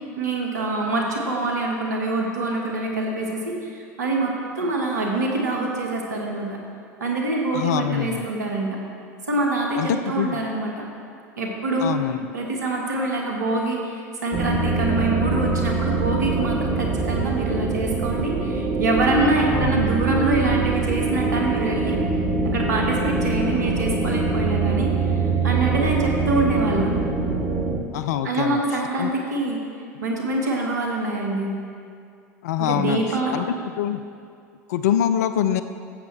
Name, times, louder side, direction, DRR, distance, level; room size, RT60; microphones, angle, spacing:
voice 1, 0.2-6.6 7.0-8.8 9.3-10.9 11.3-12.0 12.3-22.0 22.4-25.2 25.4-26.9 28.2-29.6 30.0-31.5 32.6-33.4, right 2 dB, 80° right, 0 dB, 1.5 m, -25 dB
voice 2, 7.5-8.3 9.8-10.4 11.8-12.3 19.5-20.0 27.9-28.6 29.0-29.1 32.4-33.0 33.3-33.4 33.8-34.0 34.7-35.6, left 10 dB, 70° left, 11 dB, 0.4 m, -24 dB
sound 1, 14.3-27.8, right 3 dB, 35° right, 1.1 m, -23 dB
13.5 x 7.9 x 3.3 m, 2.3 s
hypercardioid pair, 75°, 9 cm